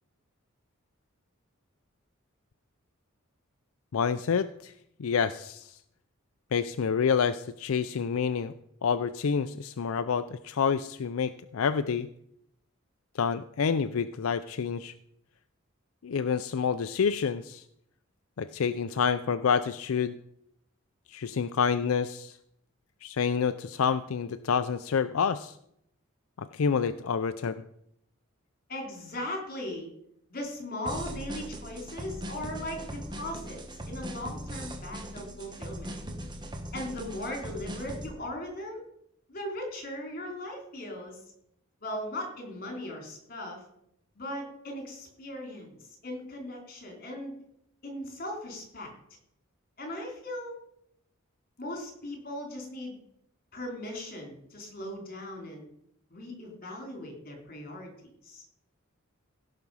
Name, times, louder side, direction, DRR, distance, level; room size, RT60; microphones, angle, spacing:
voice 1, 3.9-4.7 5.0-5.8 6.5-8.5 8.8-12.1 13.2-14.9 16.0-17.6 18.4-20.1 21.1-22.4 23.0-25.5 26.4-27.5, left 6 dB, 80° left, 12 dB, 0.5 m, -28 dB
voice 2, 28.7-29.9 30.3-33.6 33.9-35.9 36.7-38.8 39.3-41.2 41.8-43.6 44.2-47.3 47.8-48.9 49.8-50.6 51.6-53.0 53.5-55.7 56.1-57.9 58.2-58.4, left 1 dB, 45° left, 2 dB, 3.5 m, -38 dB
sound 1, 30.8-38.1, equal, 20° right, 1.3 m, -39 dB
16.5 x 6.0 x 5.5 m, 0.74 s
head